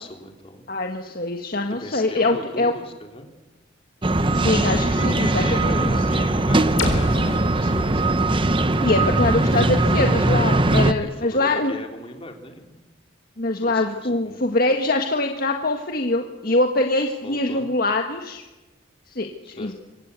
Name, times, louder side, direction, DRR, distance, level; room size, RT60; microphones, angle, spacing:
voice 1, 0.0-0.6 1.7-3.3 5.0-8.1 11.0-12.8 13.6-14.4 17.2-17.7 19.4-19.7, left 1 dB, 30° left, 4 dB, 3.4 m, -37 dB
voice 2, 0.7-2.7 4.3-5.9 8.8-11.7 13.4-18.4 19.1-19.7, left 2 dB, 50° left, 3 dB, 1.6 m, -23 dB
sound 1, 4.0-10.9, right 2 dB, 25° right, 1.0 m, -20 dB
sound 2, 6.8-10.6, left 2 dB, 75° left, 4.3 m, -34 dB
25.5 x 25.0 x 8.3 m, 1.1 s
head